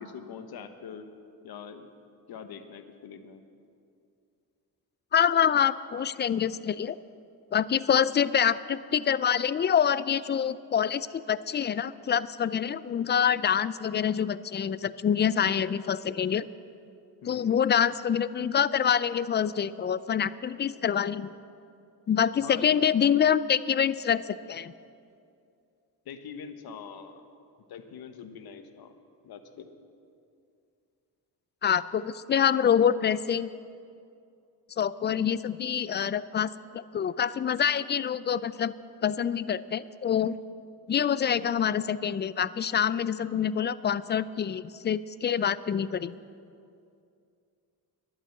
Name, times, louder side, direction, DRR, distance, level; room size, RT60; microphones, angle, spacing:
voice 1, 0.0-1.1 1.4-1.9 2.3-3.4 17.2-17.5 22.4-22.7 26.0-27.2 27.7-28.9 29.2-29.7, left 7 dB, 70° left, 9 dB, 1.1 m, -43 dB
voice 2, 5.1-7.0 7.5-16.5 17.3-21.3 22.1-24.7 31.6-33.5 34.8-38.7 39.0-40.4 40.9-46.1, left 8 dB, 30° left, 18 dB, 0.3 m, -26 dB
11.5 x 8.7 x 7.8 m, 2.5 s
cardioid pair, 80°, 39 cm